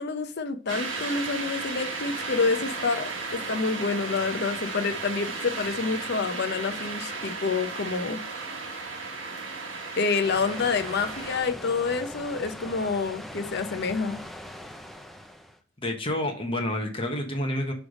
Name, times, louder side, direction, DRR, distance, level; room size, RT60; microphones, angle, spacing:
voice 1, 0.0-8.2 10.0-14.2, left 4 dB, 55° left, 0.7 m, -28 dB
sound 1, 0.7-11.4, right 3 dB, 70° right, 1.3 m, -35 dB
sound 2, 10.2-15.6, left 1 dB, ahead, 0.5 m, -41 dB
voice 2, 15.8-17.7, left 1 dB, 30° left, 1.1 m, -29 dB
6.3 x 3.4 x 5.0 m
head